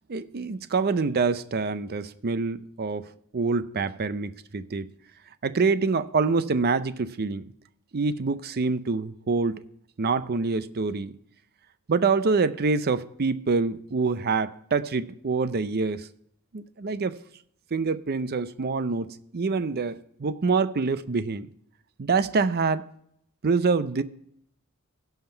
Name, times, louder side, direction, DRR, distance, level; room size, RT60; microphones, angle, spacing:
voice 1, 0.1-4.9 5.4-7.4 7.9-9.6 10.0-11.2 11.9-16.1 16.5-17.1 17.7-21.5 22.0-22.8 23.4-24.0, right 4 dB, 45° right, 0.5 m, -26 dB
16.0 x 5.8 x 4.4 m
head